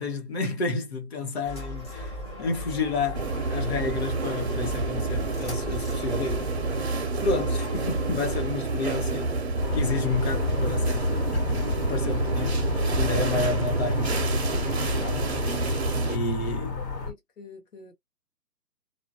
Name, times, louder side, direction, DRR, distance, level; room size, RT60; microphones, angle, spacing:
voice 1, 0.0-6.6 7.2-9.4 9.7-15.6 16.0-16.8, left 3 dB, 40° left, 1.1 m, -31 dB
sound 1, 1.5-8.4, equal, 15° left, 0.7 m, -37 dB
sound 2, 3.1-16.2, right 3 dB, 45° right, 0.4 m, -29 dB
sound 3, 9.6-17.1, left 3 dB, 85° left, 1.4 m, -29 dB
voice 2, 16.8-17.9, left 4 dB, 70° left, 1.0 m, -46 dB
2.4 x 2.1 x 2.6 m
hypercardioid pair, 160°, 49 cm